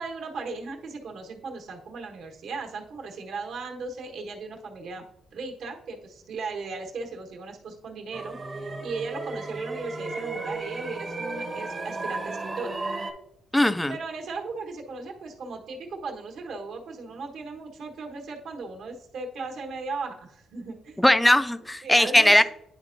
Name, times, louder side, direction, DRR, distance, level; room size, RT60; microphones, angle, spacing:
voice 1, 0.0-5.1 5.3-12.8 13.9-21.0 21.8-22.3, right 4 dB, 65° right, 2 dB, 1.2 m, -37 dB
sound 1, 8.1-13.1, right 3 dB, 20° right, 0.7 m, -34 dB
voice 2, 13.5-13.9 21.0-22.4, left 1 dB, 5° left, 13 dB, 0.3 m, -19 dB
9.7 x 4.4 x 2.6 m, 0.78 s
cardioid pair, 145°, 0 cm